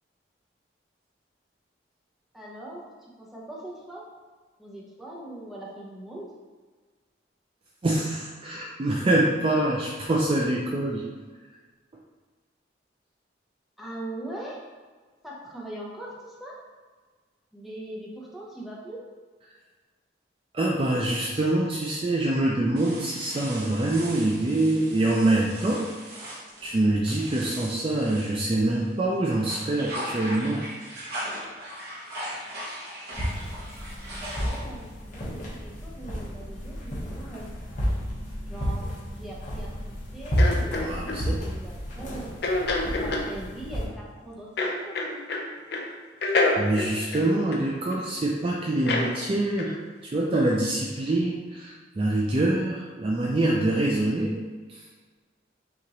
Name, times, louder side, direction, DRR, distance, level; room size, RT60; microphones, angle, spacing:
voice 1, 2.3-2.8 3.2-4.0 4.6-6.3 13.8-14.6 15.2-16.5 17.5-19.0 34.1-37.5 38.5-38.8 39.1-42.3 43.0-45.2, right 1 dB, ahead, -5 dB, 0.7 m, -41 dB
voice 2, 7.8-11.0 20.5-25.8 26.1-26.3 26.6-30.7 40.8-41.4 46.6-54.4 54.7-54.9, right 2 dB, 30° right, -2 dB, 0.4 m, -25 dB
sound 1, 22.8-28.9 29.3-34.9, equal, 55° right, 1.0 m, -39 dB
sound 2, 33.1-43.8, equal, 40° left, 1.1 m, -31 dB
sound 3, 40.4-41.2 42.4-43.3 44.6-45.4 45.7-45.9 46.2-48.0 48.9-49.1 49.6-49.8, left 2 dB, 60° left, 0.5 m, -27 dB
5.8 x 2.5 x 2.9 m, 1.4 s
head